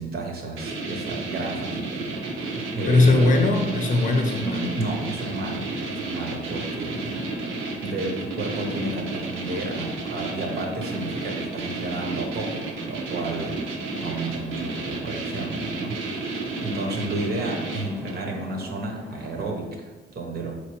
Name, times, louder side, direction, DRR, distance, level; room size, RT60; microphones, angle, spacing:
voice 1, 0.0-3.4 4.4-7.4 7.8-13.6 14.0-20.6, right 2 dB, 50° right, 1 dB, 0.8 m, -32 dB
sound 1, 0.6-18.3, right 3 dB, 80° right, 0.8 m, -32 dB
sound 2, 2.1-19.5, left 1 dB, 5° left, 0.8 m, -40 dB
voice 2, 2.9-4.7 20.3-20.5, left 2 dB, 40° left, 3 dB, 0.7 m, -20 dB
4.3 x 3.2 x 3.0 m, 1.3 s
cardioid pair, 90°, 20 cm